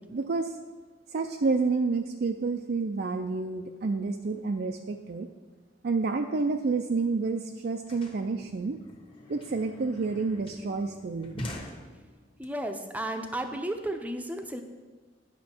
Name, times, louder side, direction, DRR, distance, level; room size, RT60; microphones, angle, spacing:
voice 1, 0.1-0.5 1.1-5.3 5.8-8.8 9.3-11.4, right 4 dB, 60° right, 4 dB, 0.4 m, -29 dB
sound 1, 7.0-7.1 7.3-12.4, left 1 dB, 30° left, 1.2 m, -44 dB
voice 2, 12.4-14.6, right 1 dB, 10° right, 6 dB, 0.6 m, -33 dB
10.5 x 6.2 x 4.4 m, 1.3 s
head